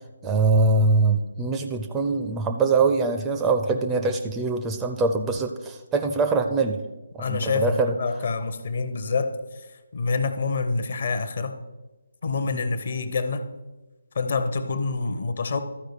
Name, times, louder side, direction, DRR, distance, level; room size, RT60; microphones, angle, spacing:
voice 1, 0.2-6.8 7.2-7.9 12.4-12.6, right 3 dB, 10° right, 5 dB, 0.4 m, -23 dB
voice 2, 7.2-9.3 9.9-11.6 12.2-13.5 14.2-15.6, left 4 dB, 45° left, 9 dB, 0.7 m, -26 dB
13.0 x 4.7 x 4.5 m, 1.1 s
figure-of-eight pair, 145°, 0 cm